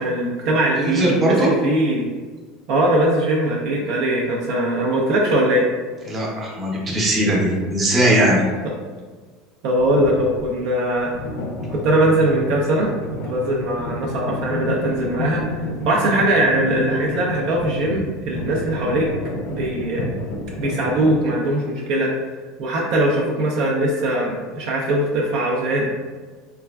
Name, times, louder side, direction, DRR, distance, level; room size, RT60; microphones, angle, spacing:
voice 1, 0.0-2.1 2.7-5.7 8.6-8.7 9.6-11.1 11.7-12.9 13.2-19.1 19.5-20.0 20.6-22.1 22.6-25.9, right 1 dB, 60° right, -2 dB, 0.4 m, -21 dB
voice 2, 0.8-1.5 6.1-8.4, right 1 dB, 25° right, -3 dB, 0.7 m, -19 dB
sound 1, 9.8-10.5 11.1-21.2, left 2 dB, 70° left, 0.4 m, -30 dB
3.1 x 2.3 x 2.2 m, 1.4 s
supercardioid pair, 125°, 0 cm